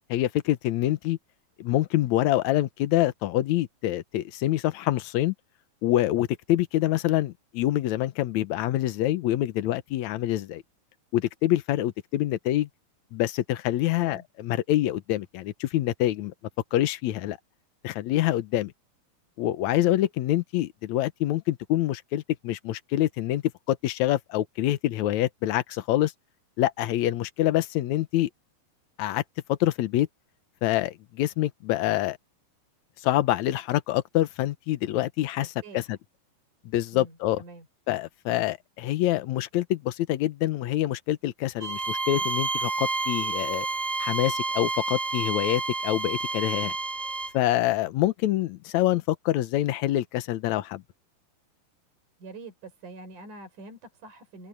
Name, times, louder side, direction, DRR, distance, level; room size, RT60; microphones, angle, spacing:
voice 1, 0.1-1.2 1.6-5.3 5.8-10.6 11.1-12.7 13.1-16.3 16.7-17.4 17.8-18.7 19.4-23.4 23.7-26.1 26.6-28.3 29.0-29.2 29.5-30.1 30.6-32.2 33.0-36.0 36.7-37.4 37.9-43.7 44.0-46.7 47.3-50.8, left 14 dB, 70° left, 1.8 m, -26 dB
voice 2, 13.9-14.2 35.4-36.0 36.9-37.7 52.2-54.5, right 3 dB, 55° right, 6.8 m, -45 dB
Bowed string instrument, 41.6-47.4, right 3 dB, 30° right, 4.8 m, -29 dB
open air
omnidirectional pair, 4.3 m